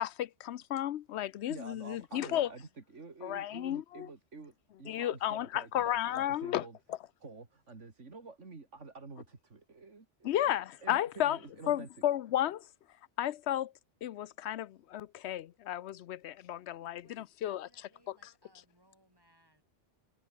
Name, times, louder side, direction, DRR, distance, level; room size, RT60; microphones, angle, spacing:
voice 1, 0.0-2.5 3.2-4.1 4.9-7.0 10.2-11.4 11.7-12.6 13.2-13.7 14.0-17.7 18.1-18.2, left 12 dB, 70° left, 0.8 m, -33 dB
voice 2, 1.5-4.5 4.8-6.8 7.2-10.3 10.8-11.9, right 3 dB, 75° right, 3.0 m, -49 dB
voice 3, 16.8-19.6, right 1 dB, 20° right, 7.8 m, -67 dB
omnidirectional pair, 1.3 m